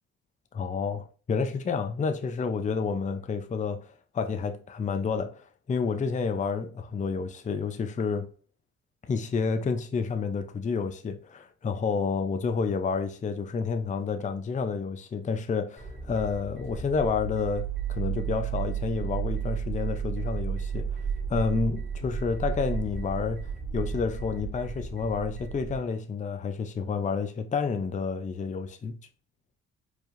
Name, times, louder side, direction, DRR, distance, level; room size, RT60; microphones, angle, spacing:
voice 1, 0.5-8.3 9.1-21.0 21.3-29.0, left 5 dB, 25° left, 0.5 m, -30 dB
sound 1, 15.8-25.8, right 6 dB, 5° right, 2.2 m, -33 dB
4.5 x 3.4 x 2.5 m
cardioid pair, 90°, 30 cm